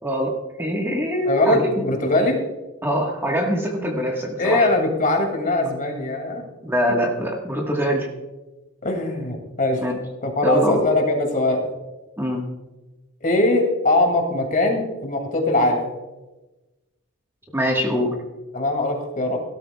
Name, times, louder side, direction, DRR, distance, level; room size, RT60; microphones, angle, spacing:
voice 1, 0.0-1.8 2.8-4.7 6.6-8.1 9.8-10.0 10.4-10.8 12.2-12.5 17.5-18.1, equal, 10° right, 0 dB, 1.4 m, -23 dB
voice 2, 1.3-2.4 4.4-6.4 8.8-9.8 10.2-11.7 13.2-15.9 18.5-19.4, left 2 dB, 40° left, 3 dB, 2.4 m, -21 dB
17.0 x 12.5 x 2.3 m, 1.1 s
head